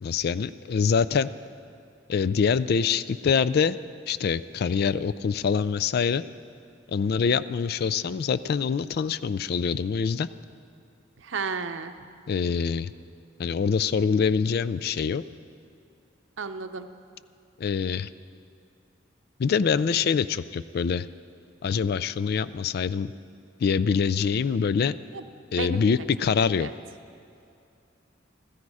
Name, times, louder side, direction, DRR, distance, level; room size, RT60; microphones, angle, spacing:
voice 1, 0.0-1.3 2.1-3.8 4.1-6.2 6.9-10.3 12.3-12.9 13.4-15.2 17.6-18.1 19.4-21.1 21.6-23.1 23.6-25.0 25.5-26.7, left 6 dB, 50° left, 15 dB, 0.3 m, -25 dB
voice 2, 11.2-11.9 16.4-16.9 25.1-25.2 25.6-26.0 26.6-26.7, right 5 dB, 70° right, 9 dB, 0.7 m, -33 dB
14.5 x 14.0 x 4.8 m, 2.6 s
head